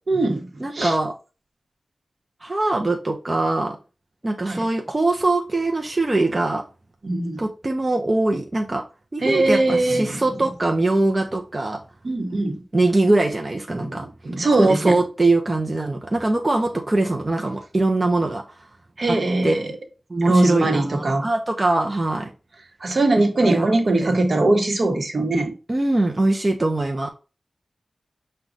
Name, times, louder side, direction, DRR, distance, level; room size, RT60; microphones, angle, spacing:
voice 1, 0.1-0.9 4.4-4.6 7.0-7.4 9.2-10.2 12.0-12.6 13.8-15.0 19.0-19.6 20.2-21.3 22.8-25.5, right 2 dB, 60° right, 0.9 m, -21 dB
voice 2, 0.6-1.1 2.4-3.8 4.2-6.6 7.4-8.8 9.1-11.8 12.7-14.1 14.6-18.7 19.1-19.2 19.4-19.7 20.1-22.3 23.4-23.7 24.0-24.1 25.7-27.1, right 2 dB, 30° right, 0.5 m, -22 dB
6.0 x 2.2 x 3.9 m
wide cardioid pair, 105°, 0 cm